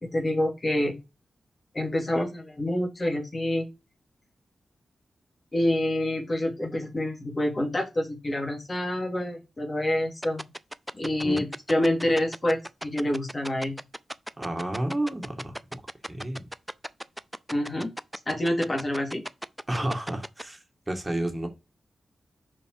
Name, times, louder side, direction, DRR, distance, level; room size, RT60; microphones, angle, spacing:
voice 1, 0.0-1.0 1.7-3.7 5.5-10.4 10.9-13.8 17.5-17.9 18.3-19.2, left 1 dB, 35° left, 2.9 m, -27 dB
sound 1, 10.2-20.4, equal, 5° right, 0.6 m, -35 dB
voice 2, 14.4-15.6 16.1-16.5 19.7-21.5, right 1 dB, 20° right, 2.1 m, -31 dB
5.4 x 5.3 x 4.8 m
supercardioid pair, 40°, 0 cm